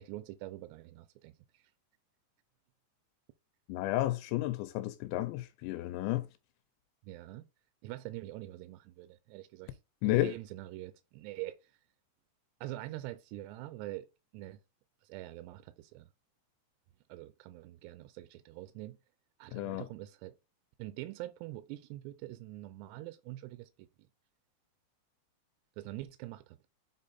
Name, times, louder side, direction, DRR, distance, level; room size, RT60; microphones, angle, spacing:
voice 1, 0.0-1.7 7.0-7.4 7.8-9.7 10.0-11.7 12.6-14.1 14.3-14.6 15.0-16.1 17.1-19.0 19.4-20.3 20.8-23.9 25.8-26.6, right 16 dB, 85° right, 2.5 m, -44 dB
voice 2, 3.7-6.3 10.0-10.3 19.5-19.9, left 16 dB, 85° left, 2.9 m, -32 dB
7.5 x 4.1 x 4.1 m
omnidirectional pair, 5.3 m